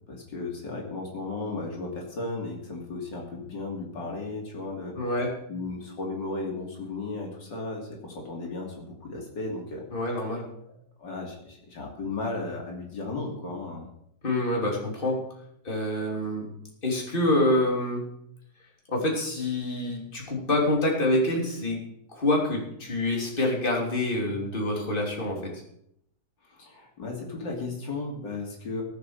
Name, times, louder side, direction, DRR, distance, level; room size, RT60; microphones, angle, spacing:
voice 1, 0.1-9.8 10.2-10.3 11.0-13.9 26.4-28.8, left 3 dB, 80° left, -1 dB, 3.6 m, -35 dB
voice 2, 5.0-5.3 9.9-10.5 14.2-15.2 15.6-16.5 16.8-18.1 18.9-21.8 22.1-25.6, left 1 dB, 30° left, -1 dB, 3.5 m, -26 dB
17.5 x 7.8 x 6.6 m, 0.73 s
omnidirectional pair, 1.9 m